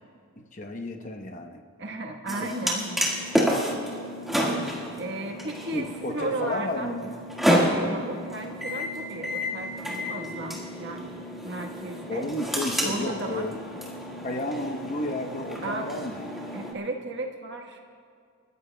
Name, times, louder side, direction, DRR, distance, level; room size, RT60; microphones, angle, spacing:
voice 1, 0.4-1.6 5.7-7.1 12.1-13.6 14.2-16.3, left 1 dB, 35° left, 4 dB, 0.9 m, -32 dB
voice 2, 1.8-3.4 5.0-6.9 7.6-12.3 12.8-13.5 15.6-15.9 16.5-17.8, right 2 dB, 50° right, 2 dB, 1.3 m, -35 dB
sound 1, 2.3-16.7, equal, ahead, 1.6 m, -30 dB
30.0 x 14.0 x 2.2 m, 2.3 s
head